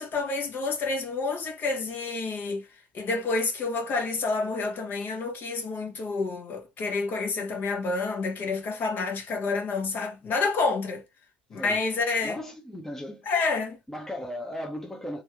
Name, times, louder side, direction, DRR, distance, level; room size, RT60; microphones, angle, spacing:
voice 1, 0.0-2.6 2.9-11.0 11.5-12.4 13.2-13.8, left 3 dB, 40° left, 1.4 m, -29 dB
voice 2, 12.2-13.2 13.9-15.2, left 1 dB, 10° left, 1.0 m, -36 dB
3.3 x 3.2 x 3.6 m
figure-of-eight pair, 65°, 5 cm